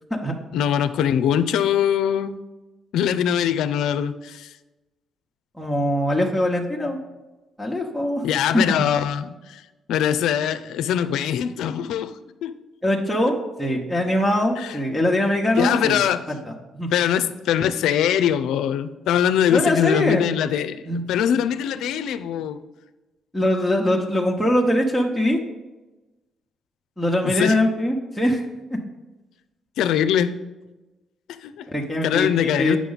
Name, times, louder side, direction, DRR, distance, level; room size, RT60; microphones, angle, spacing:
voice 1, 0.5-2.4 2.9-4.5 8.2-9.6 9.9-12.1 12.4-12.5 14.6-14.7 15.5-16.2 16.9-20.8 21.1-22.6 27.4-27.6 29.8-30.3 31.4-31.6 32.0-32.8, left 9 dB, 85° left, 12 dB, 0.4 m, -22 dB
voice 2, 5.6-7.0 7.6-8.2 8.5-8.9 12.8-16.0 16.3-16.9 19.5-20.3 20.9-21.0 23.3-25.4 27.0-28.5 28.7-28.8 31.7-32.8, left 1 dB, ahead, -2 dB, 1.0 m, -22 dB
8.3 x 6.2 x 4.0 m, 1.1 s
cardioid pair, 90°, 0 cm